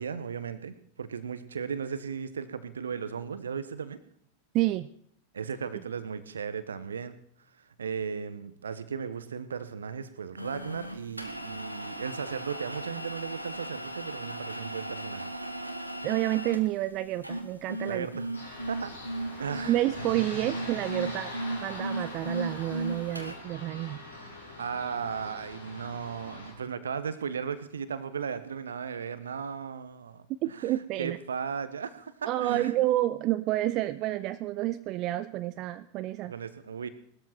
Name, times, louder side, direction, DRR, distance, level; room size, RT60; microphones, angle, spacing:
voice 1, 0.0-4.0 5.3-7.1 7.8-15.3 17.9-18.3 18.7-18.9 19.4-19.9 20.3-20.5 24.6-32.8 36.2-36.9, right 6 dB, 70° right, 13 dB, 1.2 m, -36 dB
voice 2, 4.5-4.9 16.0-18.1 19.7-21.3 21.6-24.0 30.4-31.2 32.3-36.3, right 15 dB, 40° right, 13 dB, 0.5 m, -29 dB
sound 1, 10.4-23.3, right 1 dB, 90° right, 1.8 m, -37 dB
sound 2, 18.3-26.5, left 2 dB, 80° left, 5.0 m, -43 dB
19.5 x 13.0 x 4.5 m, 0.65 s
figure-of-eight pair, 90°, 0 cm